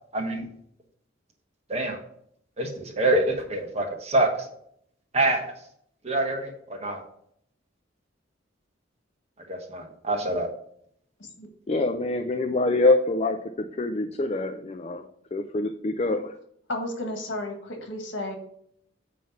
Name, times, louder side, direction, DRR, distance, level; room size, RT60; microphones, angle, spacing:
voice 1, 0.1-0.4 1.7-2.0 2.6-4.5 5.1-5.5 6.0-7.0 9.5-10.5, right 2 dB, 35° right, 2 dB, 1.3 m, -26 dB
voice 2, 11.7-16.3, left 2 dB, 35° left, 7 dB, 0.4 m, -25 dB
voice 3, 16.7-18.4, left 1 dB, 70° left, 3 dB, 1.7 m, -33 dB
9.3 x 3.2 x 5.8 m, 0.68 s
head